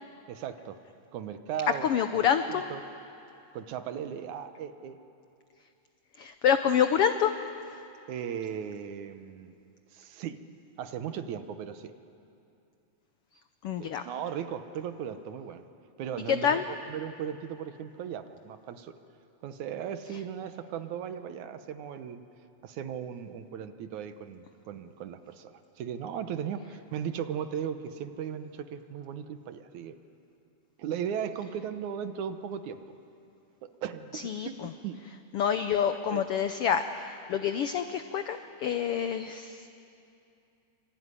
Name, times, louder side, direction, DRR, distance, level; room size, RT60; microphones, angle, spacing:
voice 1, 0.3-0.8 1.1-2.8 3.5-5.0 8.1-9.5 9.9-10.4 10.8-11.9 13.8-15.6 16.0-19.0 19.4-22.2 22.6-30.0 30.8-32.8 33.6-34.6 34.8-35.0 36.1-36.2, right 8 dB, 70° right, 9 dB, 2.3 m, -37 dB
voice 2, 1.8-2.6 6.2-7.3 13.6-14.0 16.3-16.6 34.1-34.7 35.3-39.8, left 8 dB, 85° left, 9 dB, 1.2 m, -27 dB
25.0 x 24.0 x 9.8 m, 2.7 s
omnidirectional pair, 3.6 m